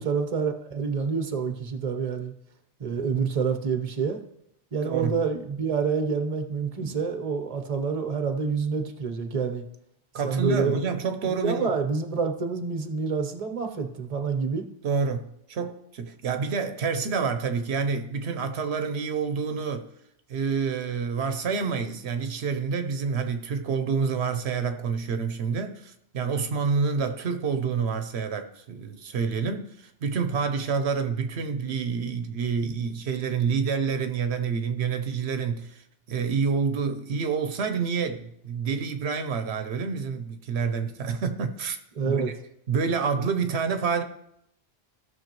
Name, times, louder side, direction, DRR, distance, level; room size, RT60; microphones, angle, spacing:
voice 1, 0.0-2.3 2.8-4.2 4.7-9.6 10.2-10.9 11.3-14.7 41.9-42.3, right 5 dB, 40° right, 0.9 m, -27 dB
voice 2, 10.1-11.7 14.8-19.9 20.3-35.8 36.1-41.8 42.0-42.3 42.7-44.0, right 5 dB, 85° right, 1.0 m, -28 dB
16.0 x 6.2 x 3.0 m
omnidirectional pair, 1.1 m